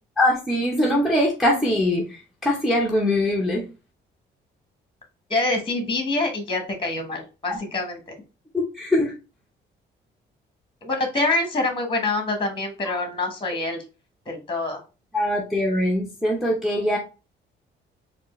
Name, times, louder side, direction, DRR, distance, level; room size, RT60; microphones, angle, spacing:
voice 1, 0.2-3.6 7.5-7.6 8.5-9.1 12.8-13.0 15.1-17.0, left 1 dB, ahead, -2 dB, 0.8 m, -22 dB
voice 2, 5.3-8.1 10.8-13.8 14.3-14.8, left 2 dB, 25° left, 5 dB, 1.2 m, -26 dB
4.3 x 2.5 x 3.1 m, 0.31 s
cardioid pair, 90°, 20 cm